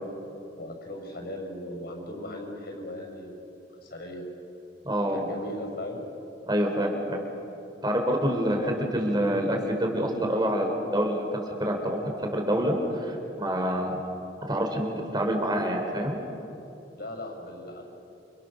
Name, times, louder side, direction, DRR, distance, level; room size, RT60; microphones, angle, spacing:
voice 1, 0.5-3.4 3.8-4.2 5.1-6.0 8.3-9.2 17.0-17.8, left 1 dB, 60° left, 2 dB, 6.3 m, -38 dB
voice 2, 4.8-5.2 6.5-7.2 7.8-8.6 8.9-11.2 11.6-12.0 12.3-12.8 13.0-14.0 14.5-16.2, equal, 25° right, 2 dB, 4.3 m, -26 dB
29.0 x 28.0 x 6.7 m, 2.9 s
head